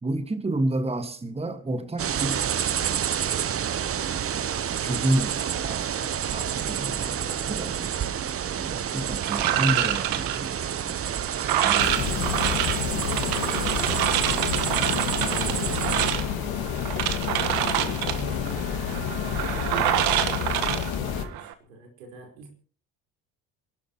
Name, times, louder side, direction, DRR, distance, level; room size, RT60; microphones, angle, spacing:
voice 1, 0.0-2.5 4.8-7.9 8.6-11.0 11.4-12.8, right 1 dB, 15° right, 1.8 m, -31 dB
sound 1, 2.0-16.1, right 9 dB, 35° right, 0.9 m, -29 dB
sound 2, 9.2-21.5, right 12 dB, 65° right, 1.5 m, -27 dB
sound 3, 11.8-21.3, left 9 dB, 65° left, 2.0 m, -29 dB
voice 2, 13.4-14.1 14.4-22.6, right 3 dB, 80° right, 4.8 m, -46 dB
28.0 x 12.0 x 3.1 m
hypercardioid pair, 60°, 40 cm